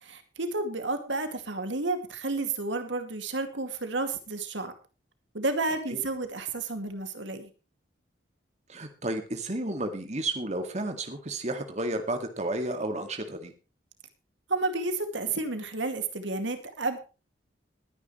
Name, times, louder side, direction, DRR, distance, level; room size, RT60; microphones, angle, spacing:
voice 1, 0.0-4.7 5.3-7.5 14.5-17.0, right 3 dB, 75° right, 8 dB, 2.4 m, -31 dB
voice 2, 8.7-13.5, right 1 dB, 35° right, 5 dB, 2.1 m, -32 dB
21.0 x 10.0 x 3.2 m, 0.33 s
head